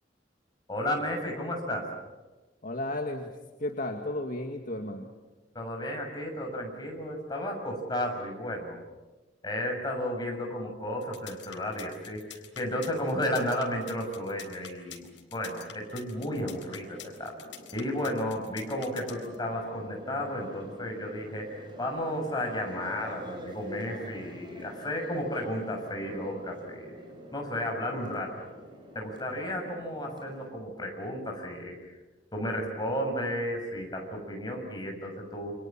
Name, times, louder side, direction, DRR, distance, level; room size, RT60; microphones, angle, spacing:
voice 1, 0.7-1.9 5.6-8.8 9.4-12.2 12.6-17.3 17.7-26.9 27.3-28.4 29.0-31.8 32.3-35.5, left 1 dB, 25° left, 1 dB, 6.9 m, -33 dB
voice 2, 2.6-3.3 3.6-5.1, left 1 dB, 50° left, 3 dB, 2.0 m, -33 dB
sound 1, 11.0-19.3, left 9 dB, 80° left, 3.9 m, -46 dB
sound 2, 16.1-30.5, equal, 25° right, 6.2 m, -46 dB
29.0 x 26.5 x 7.5 m, 1.2 s
head